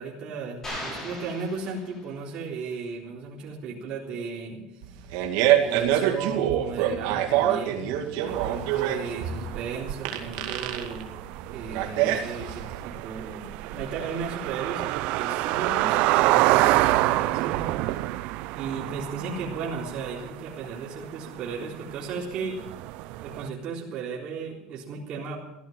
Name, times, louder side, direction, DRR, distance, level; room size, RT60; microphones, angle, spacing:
voice 1, 0.0-4.6 5.6-11.1 11.5-14.8 15.1-18.2 18.6-22.6 23.2-25.3, right 5 dB, 45° right, -3 dB, 3.8 m, -35 dB
sound 1, 0.6-2.4, left 1 dB, 20° left, 6.8 m, -38 dB
Fart, 4.8-12.8, right 11 dB, 80° right, 2.2 m, -25 dB
sound 2, 8.3-23.5, right 17 dB, 65° right, 0.6 m, -28 dB
16.0 x 12.5 x 7.3 m, 0.86 s
cardioid pair, 150°, 2 cm